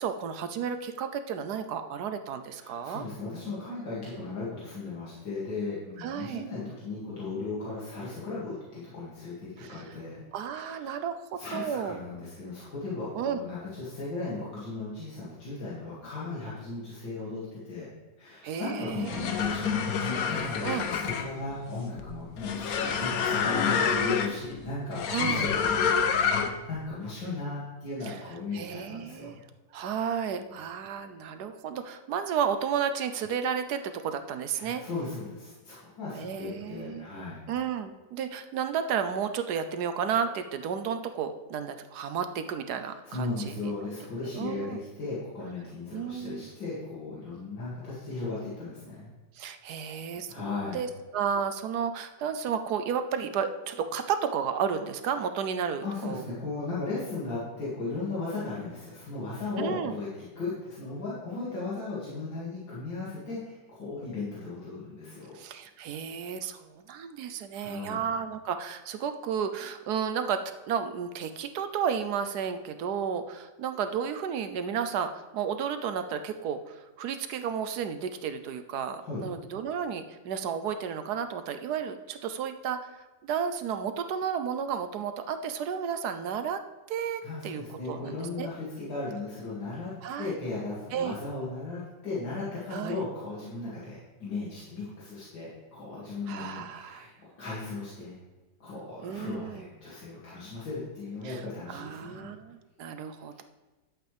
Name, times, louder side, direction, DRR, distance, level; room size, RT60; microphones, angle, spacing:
voice 1, 0.0-3.0 6.0-6.4 9.6-9.8 10.3-12.0 13.1-13.4 18.4-19.3 20.6-20.9 25.1-25.5 28.1-28.2 28.5-29.4 29.7-34.8 36.2-37.1 37.5-43.7 44.3-44.8 45.9-46.5 49.4-50.3 50.7-56.2 59.6-60.0 65.3-70.4 70.7-86.6 86.9-88.5 90.0-90.4 90.9-91.1 92.7-93.0 96.3-97.1 99.0-99.7 101.2-101.4 101.7-103.4, right 7 dB, 70° right, 9 dB, 1.1 m, -32 dB
voice 2, 2.5-10.2 10.5-11.0 11.4-17.9 18.2-29.3 30.4-30.5 34.5-37.4 42.8-49.1 50.3-50.8 55.8-65.3 67.5-68.0 79.0-79.3 87.2-89.9 90.2-98.2 98.6-102.3 103.3-103.4, left 3 dB, 90° left, -9 dB, 3.1 m, -36 dB
sound 1, 18.9-26.7, left 6 dB, 60° left, 1.1 m, -28 dB
11.5 x 7.9 x 3.4 m, 1.2 s
omnidirectional pair, 2.0 m